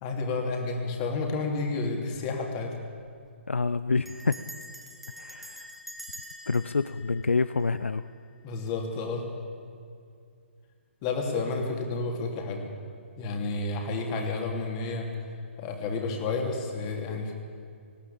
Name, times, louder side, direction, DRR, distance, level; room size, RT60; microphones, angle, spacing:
voice 1, 0.0-2.8 8.4-9.3 11.0-12.7 13.2-15.1 15.6-17.3, left 3 dB, 30° left, 2 dB, 3.1 m, -30 dB
Bell, 3.2-3.3 4.1-8.1, equal, ahead, 1.4 m, -45 dB
voice 2, 3.5-4.5 5.2-5.7 6.5-8.0, left 4 dB, 75° left, 15 dB, 0.5 m, -27 dB
19.5 x 16.0 x 8.7 m, 2.3 s
figure-of-eight pair, 130°, 7 cm